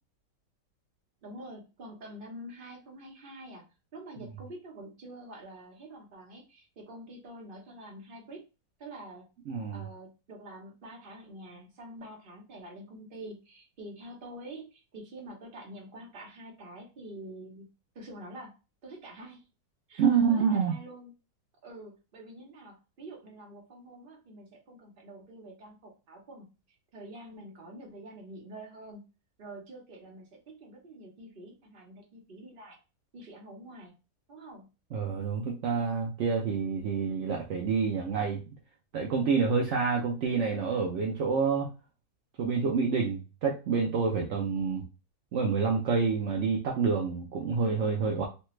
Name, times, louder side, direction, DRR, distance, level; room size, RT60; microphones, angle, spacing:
voice 1, 1.2-3.6 3.9-8.4 8.8-9.3 9.7-17.7 17.9-18.5 18.8-19.5 19.9-21.1 21.6-29.0 29.4-32.8 33.1-33.9 34.3-34.6, right 1 dB, 40° right, 0 dB, 1.0 m, -47 dB
voice 2, 9.5-9.8 20.0-20.7 34.9-38.4 38.9-41.7 42.4-44.8 45.3-48.2, right 5 dB, 70° right, 0 dB, 0.7 m, -28 dB
3.2 x 2.2 x 3.0 m, 0.30 s
omnidirectional pair, 1.7 m